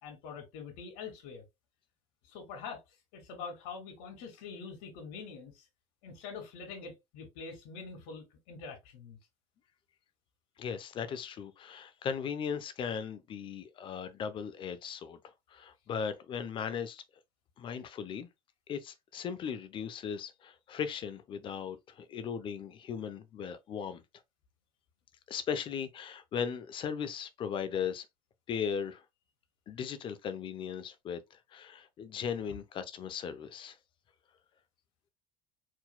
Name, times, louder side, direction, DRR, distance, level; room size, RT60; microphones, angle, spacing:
voice 1, 0.0-1.4 2.3-2.8 3.1-5.6 6.0-9.2 32.5-32.6, left 5 dB, 85° left, 2.4 m, -45 dB
voice 2, 10.6-15.2 15.5-17.0 17.6-18.3 18.7-24.0 25.3-28.1 28.5-29.0 29.7-33.8, left 7 dB, 40° left, 0.7 m, -37 dB
4.6 x 3.9 x 2.2 m
cardioid pair, 140°, 14 cm